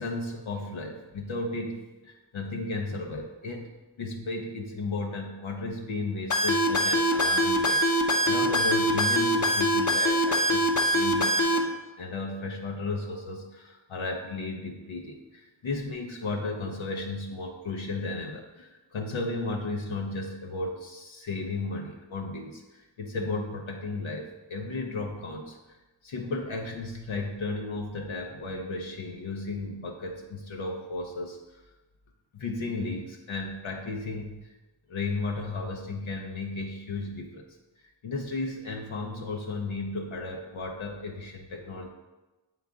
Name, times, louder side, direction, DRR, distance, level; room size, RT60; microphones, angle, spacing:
voice 1, 0.0-3.7 4.0-25.6 26.0-31.6 32.3-34.5 34.9-37.4 38.0-41.9, left 3 dB, 75° left, 1 dB, 0.8 m, -34 dB
sound 1, 6.3-11.6, equal, 40° left, 0.8 m, -23 dB
8.8 x 3.5 x 3.7 m, 1.1 s
wide cardioid pair, 55°, 48 cm